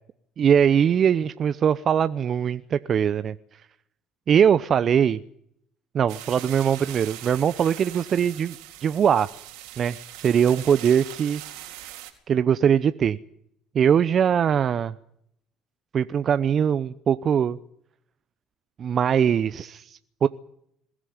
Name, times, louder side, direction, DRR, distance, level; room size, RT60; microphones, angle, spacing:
voice 1, 0.4-3.3 4.3-5.2 5.9-8.5 8.8-9.3 9.8-11.4 12.3-13.2 13.7-14.9 15.9-17.6 18.8-20.3, right 8 dB, 45° right, 14 dB, 0.8 m, -21 dB
sound 1, 6.1-12.1, right 14 dB, 80° right, 4.0 m, -41 dB
21.5 x 16.0 x 9.5 m, 0.72 s
hypercardioid pair, 70°, 0 cm